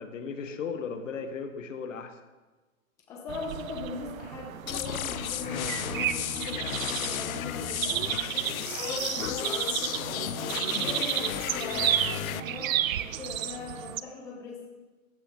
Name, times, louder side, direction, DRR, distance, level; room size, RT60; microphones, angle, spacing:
voice 1, 0.0-2.2, left 5 dB, 65° left, 8 dB, 1.3 m, -36 dB
voice 2, 3.1-8.5 8.8-14.6, left 3 dB, 10° left, -2 dB, 0.8 m, -40 dB
sound 1, 3.3-14.0, right 11 dB, 75° right, 0.7 m, -32 dB
sound 2, 4.7-12.4, left 11 dB, 85° left, 0.7 m, -34 dB
14.5 x 10.5 x 3.7 m, 1.3 s
hypercardioid pair, 170°, 41 cm